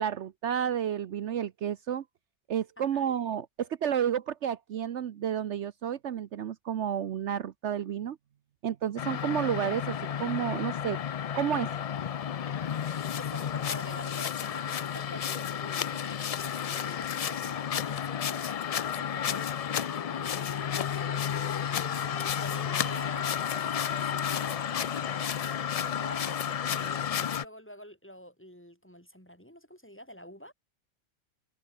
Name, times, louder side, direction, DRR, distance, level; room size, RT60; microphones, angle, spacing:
voice 1, 0.0-2.0 2.5-8.2 8.6-11.0 11.3-11.7, right 9 dB, 70° right, 1.1 m, -31 dB
voice 2, 2.8-3.1 13.2-30.5, equal, 10° left, 4.8 m, -48 dB
sound 1, 9.0-27.4, left 8 dB, 70° left, 0.3 m, -32 dB
omnidirectional pair, 1.3 m